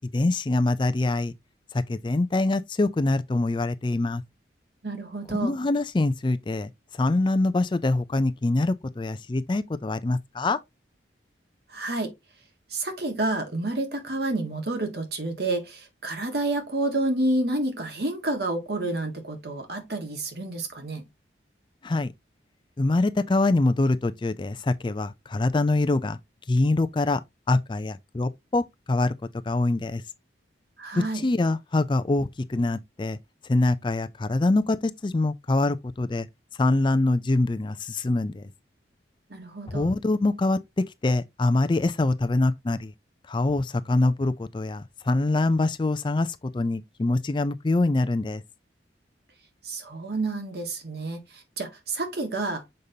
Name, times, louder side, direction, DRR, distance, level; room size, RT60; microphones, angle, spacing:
voice 1, 0.1-1.3 1.7-4.2 5.4-10.6 21.8-22.1 22.8-26.2 26.5-27.2 27.5-29.1 29.4-30.0 30.9-33.2 33.5-36.3 36.6-38.5 39.7-42.9 43.3-48.4, left 2 dB, 25° left, 0.4 m, -24 dB
voice 2, 4.8-5.5 11.7-12.1 12.7-21.1 30.8-31.2 39.3-39.9 49.6-52.7, right 2 dB, 60° right, 1.5 m, -29 dB
6.6 x 5.2 x 2.7 m
head